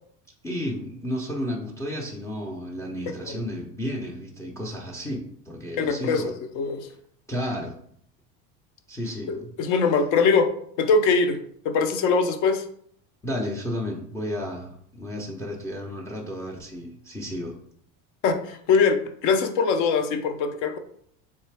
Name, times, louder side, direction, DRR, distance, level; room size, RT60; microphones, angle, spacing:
voice 1, 0.4-6.3 7.3-7.8 8.9-9.5 13.2-17.5, equal, 10° left, -1 dB, 0.5 m, -32 dB
voice 2, 5.8-6.2 6.5-6.8 9.3-10.5 10.8-11.4 11.6-12.6 18.2-19.0 19.2-20.8, left 5 dB, 55° left, 7 dB, 0.7 m, -22 dB
3.8 x 3.2 x 3.3 m, 0.65 s
cardioid pair, 150°, 37 cm